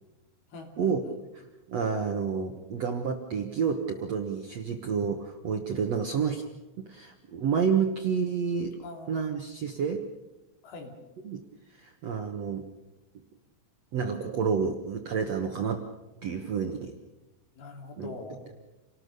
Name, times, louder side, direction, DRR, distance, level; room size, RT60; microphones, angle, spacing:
voice 1, 0.5-1.2 8.8-9.5 10.6-11.0 17.6-18.5, left 3 dB, 60° left, 3 dB, 4.6 m, -43 dB
voice 2, 1.3-6.4 6.8-8.8 9.1-10.0 11.2-11.4 11.7-12.7 13.9-15.9 16.2-16.9 18.0-18.1, right 6 dB, 70° right, 4 dB, 1.5 m, -29 dB
28.5 x 19.0 x 6.8 m, 1.1 s
omnidirectional pair, 5.0 m